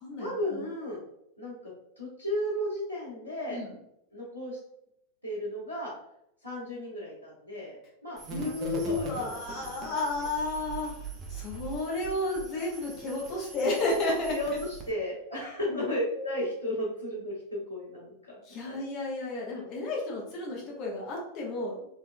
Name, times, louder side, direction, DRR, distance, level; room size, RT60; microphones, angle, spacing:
voice 1, 0.2-1.0 1.4-3.6 4.1-4.6 5.2-5.9 6.4-7.7 8.0-9.8 10.2-10.3 14.3-18.4 18.6-18.8, equal, 85° right, -9 dB, 1.1 m, -34 dB
sound 1, 8.2-14.9, right 5 dB, 30° right, 0.6 m, -42 dB
voice 2, 8.3-10.9 11.3-14.4 15.7-15.8 18.5-21.9, left 2 dB, 40° left, -2 dB, 1.1 m, -32 dB
3.4 x 2.9 x 2.2 m, 0.77 s
figure-of-eight pair, 90°, 0 cm